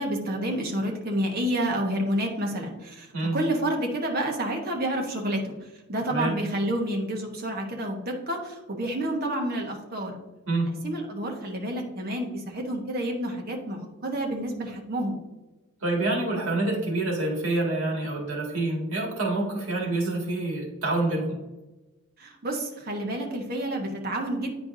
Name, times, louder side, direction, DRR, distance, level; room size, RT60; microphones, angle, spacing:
voice 1, 0.0-3.1 3.3-5.4 5.9-10.1 10.8-15.2 22.2-24.6, right 1 dB, 45° right, 1 dB, 1.1 m, -29 dB
voice 2, 15.8-21.4, right 2 dB, 80° right, -2 dB, 2.1 m, -27 dB
9.2 x 4.5 x 2.7 m, 1.1 s
head